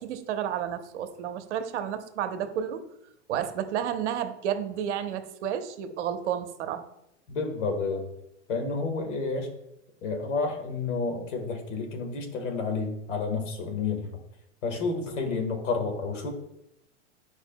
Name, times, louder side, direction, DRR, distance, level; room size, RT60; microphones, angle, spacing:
voice 1, 0.0-2.8 3.3-6.8, right 9 dB, 70° right, 8 dB, 0.9 m, -31 dB
voice 2, 7.3-8.1 8.5-9.5 10.0-14.1 14.6-16.3, left 4 dB, 75° left, 3 dB, 1.6 m, -30 dB
8.8 x 4.8 x 2.2 m, 0.82 s
hypercardioid pair, 115°, 37 cm